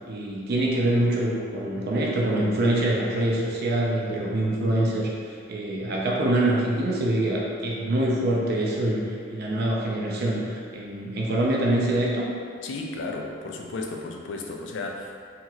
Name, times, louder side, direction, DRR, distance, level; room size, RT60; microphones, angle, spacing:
voice 1, 0.1-5.1 5.5-12.3, right 1 dB, 55° right, -3 dB, 0.5 m, -25 dB
voice 2, 12.6-15.2, left 3 dB, 70° left, 1 dB, 0.3 m, -34 dB
2.9 x 2.8 x 2.4 m, 2.2 s
head